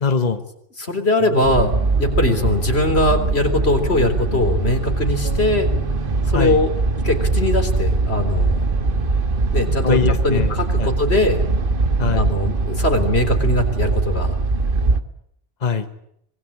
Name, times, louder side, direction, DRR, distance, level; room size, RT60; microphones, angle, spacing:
voice 1, 0.0-0.4 6.3-6.6 9.8-10.9 12.0-12.2 15.6-15.9, left 5 dB, 45° left, 8 dB, 1.4 m, -22 dB
voice 2, 0.8-1.7 2.0-5.7 6.3-6.7 7.0-8.6 9.5-10.0 10.2-11.4 12.1-14.3, left 1 dB, 85° left, 6 dB, 4.0 m, -20 dB
sound 1, 1.1-6.6, equal, 25° right, 3.4 m, -35 dB
sound 2, 1.4-15.0, right 3 dB, 60° right, 1.6 m, -21 dB
25.5 x 21.0 x 8.6 m, 0.74 s
omnidirectional pair, 1.1 m